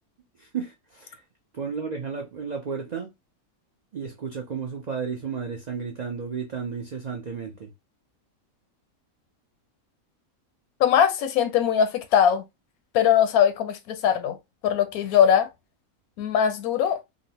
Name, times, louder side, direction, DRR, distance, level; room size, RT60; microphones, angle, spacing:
voice 1, 0.4-1.2 1.5-3.1 3.9-7.7, right 6 dB, 65° right, 0.4 m, -33 dB
voice 2, 10.8-12.4 12.9-14.4 14.6-15.5 16.2-17.0, left 9 dB, 85° left, 1.1 m, -21 dB
3.7 x 2.0 x 2.7 m
omnidirectional pair, 1.5 m